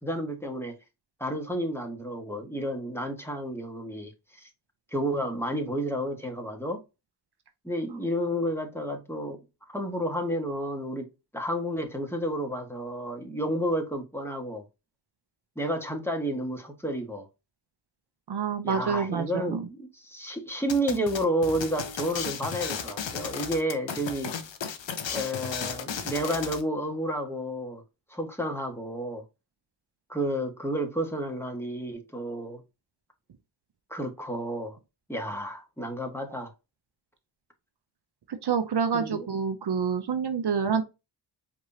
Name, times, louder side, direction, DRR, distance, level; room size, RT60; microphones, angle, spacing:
voice 1, 0.0-0.7 1.2-4.5 4.9-6.8 7.6-9.4 9.7-11.1 11.3-14.6 15.5-17.2 18.6-24.3 25.1-27.8 28.1-29.2 30.1-32.6 33.9-34.8 35.1-36.5 38.9-39.3, equal, 5° left, 1.6 m, -31 dB
voice 2, 18.3-19.7 38.3-40.8, right 6 dB, 60° right, 0.7 m, -27 dB
sound 1, 20.7-26.6, left 7 dB, 70° left, 0.9 m, -34 dB
4.8 x 3.5 x 2.8 m
cardioid pair, 55°, 46 cm